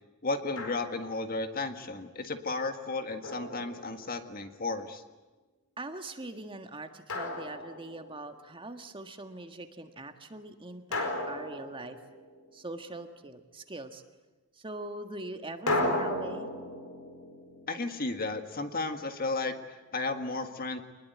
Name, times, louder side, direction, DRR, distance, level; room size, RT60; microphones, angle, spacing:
voice 1, 0.2-5.0 17.7-20.8, left 3 dB, 45° left, 7 dB, 1.7 m, -34 dB
Drum, 0.6-1.2 3.2-4.3 7.1-8.3 10.9-12.6 15.7-18.6, left 1 dB, 80° left, 4.9 m, -35 dB
voice 2, 5.8-12.0 12.5-14.0 14.6-16.5, right 2 dB, 25° right, 6 dB, 1.7 m, -42 dB
25.5 x 20.5 x 9.5 m, 1.2 s
head